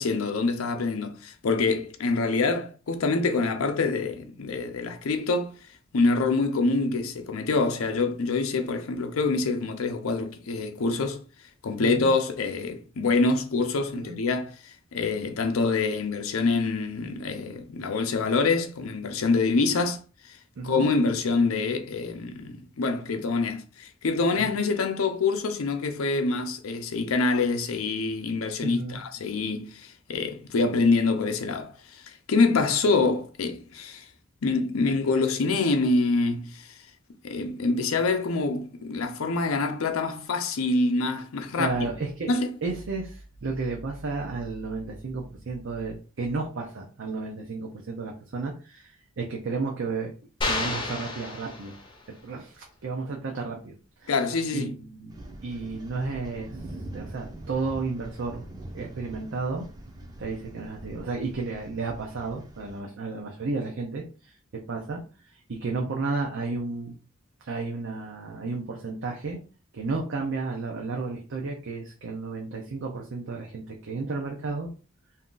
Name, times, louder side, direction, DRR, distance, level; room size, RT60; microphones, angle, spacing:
voice 1, 0.0-5.5 5.9-11.2 11.6-20.0 20.3-20.4 20.6-34.1 34.4-36.7 37.2-41.7 42.3-42.6 54.1-54.8, left 3 dB, 85° left, 0.5 m, -26 dB
voice 2, 11.8-12.1 13.9-14.2 20.6-20.9 24.4-24.5 28.6-29.0 41.6-42.3 42.6-50.1 50.4-51.7 52.2-53.7 54.0-54.1 54.5-55.1 55.4-56.6 56.9-58.4 58.7-59.7 60.2-65.0 65.3-67.0 67.4-69.4 69.7-74.7, right 3 dB, 65° right, 0.6 m, -32 dB
sound 1, 50.4-52.1, left 2 dB, 25° left, 0.6 m, -31 dB
sound 2, 55.1-62.8, right 1 dB, 20° right, 0.6 m, -43 dB
2.7 x 2.4 x 3.7 m
head